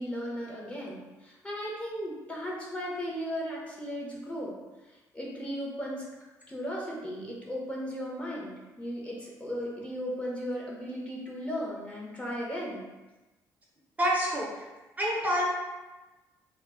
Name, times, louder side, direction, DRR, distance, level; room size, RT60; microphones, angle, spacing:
voice 1, 0.0-4.5 5.1-6.0 6.5-12.8, equal, 15° left, -3 dB, 0.7 m, -36 dB
voice 2, 14.0-14.6 15.0-15.4, equal, 20° right, -4 dB, 0.5 m, -27 dB
2.1 x 2.0 x 3.5 m, 1.1 s
cardioid pair, 85°, 7 cm